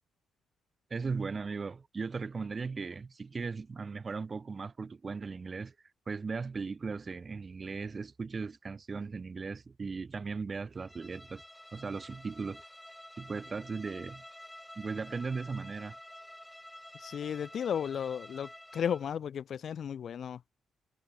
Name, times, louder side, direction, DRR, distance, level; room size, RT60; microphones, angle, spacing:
voice 1, 0.9-5.7 6.1-11.4 11.7-12.6 13.2-14.2 14.8-16.0, right 4 dB, 35° right, 0.9 m, -37 dB
Bowed string instrument, 10.8-19.1, left 1 dB, 5° left, 1.2 m, -50 dB
voice 2, 16.9-20.4, left 8 dB, 60° left, 1.0 m, -34 dB
cardioid pair, 90°, 0 cm